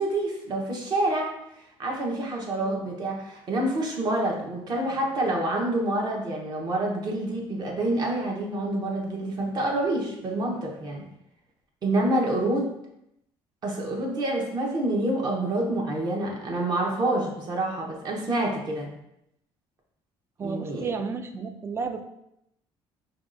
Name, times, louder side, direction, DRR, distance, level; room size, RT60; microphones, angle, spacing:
voice 1, 0.0-1.3 1.8-11.0 11.8-12.7 13.6-18.9 20.4-20.9, right 1 dB, 40° right, 0 dB, 0.8 m, -27 dB
voice 2, 20.4-22.0, right 5 dB, 25° right, 8 dB, 0.3 m, -32 dB
4.6 x 2.3 x 2.5 m, 0.80 s
cardioid pair, 120°, 10 cm